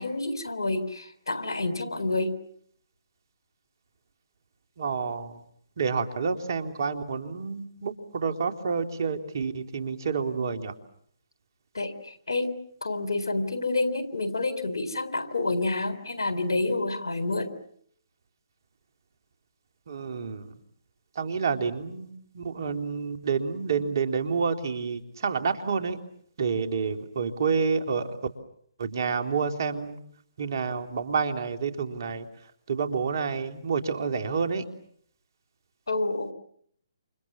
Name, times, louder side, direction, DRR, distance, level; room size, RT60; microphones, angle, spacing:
voice 1, 0.0-2.3 11.7-11.9 12.3-12.5 12.8-17.5 35.9-36.3, left 2 dB, 80° left, 10 dB, 4.1 m, -28 dB
voice 2, 4.8-5.4 5.8-10.7 19.9-20.5 21.1-26.0 26.4-28.2 28.8-30.0 30.4-32.3 32.7-34.6, right 5 dB, 55° right, 6 dB, 2.9 m, -29 dB
29.0 x 27.0 x 7.3 m, 0.67 s
figure-of-eight pair, 145°, 2 cm